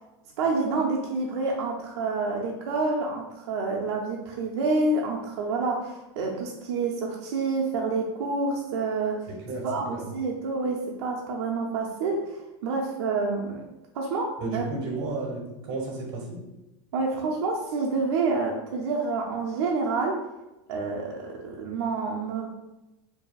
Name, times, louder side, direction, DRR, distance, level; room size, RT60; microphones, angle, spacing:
voice 1, 0.4-9.2 9.6-13.6 13.9-14.6 16.9-20.2 20.7-22.5, right 3 dB, 70° right, -1 dB, 0.6 m, -28 dB
voice 2, 9.3-10.0 14.4-16.4, right 2 dB, 35° right, -1 dB, 1.3 m, -33 dB
4.7 x 2.7 x 2.4 m, 0.99 s
supercardioid pair, 175°, 14 cm